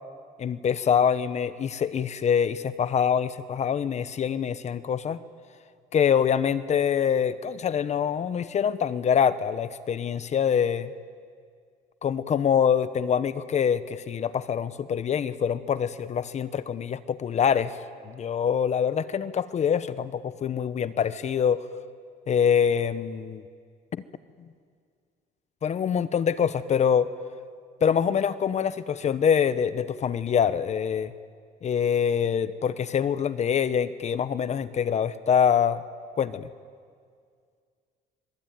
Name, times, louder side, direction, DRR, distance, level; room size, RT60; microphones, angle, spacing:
voice 1, 0.4-5.2 5.9-10.9 12.0-17.8 18.0-21.7 22.3-23.4 23.9-24.0 25.6-27.1 27.8-31.1 31.6-35.8 36.1-36.5, left 7 dB, 40° left, 14 dB, 0.9 m, -25 dB
26.5 x 21.5 x 9.2 m, 2.1 s
cardioid pair, 110°, 17 cm